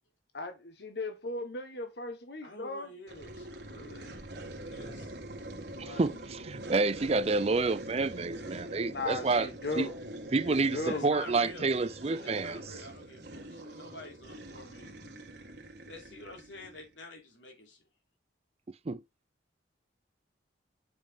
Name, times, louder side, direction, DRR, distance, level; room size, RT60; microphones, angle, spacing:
voice 1, 0.3-2.9 5.8-6.0 8.9-9.9 10.4-11.0, left 2 dB, 60° left, 1.1 m, -37 dB
voice 2, 2.4-4.1 4.7-5.2 10.8-11.7 12.2-15.3 15.9-17.8, left 2 dB, 90° left, 3.2 m, -48 dB
sound 1, 3.1-16.9, right 1 dB, 60° right, 1.7 m, -44 dB
voice 3, 5.8-9.5 9.8-9.9 10.3-12.6 18.9-19.0, right 3 dB, 35° right, 0.5 m, -29 dB
7.5 x 5.3 x 3.6 m
head